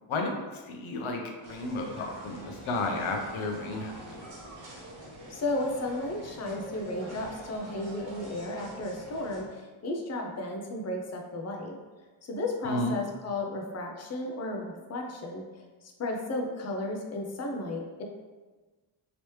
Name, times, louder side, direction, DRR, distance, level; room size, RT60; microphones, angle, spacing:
voice 1, 0.1-1.2 1.5-4.3 12.6-12.9, left 2 dB, 80° left, 2 dB, 0.6 m, -32 dB
sound 1, 1.4-9.4, right 1 dB, 70° right, 1.1 m, -45 dB
voice 2, 5.3-11.8 12.3-15.4 15.8-18.0, left 2 dB, 35° left, 1 dB, 0.5 m, -34 dB
3.2 x 2.9 x 3.1 m, 1.3 s
wide cardioid pair, 135°, 48 cm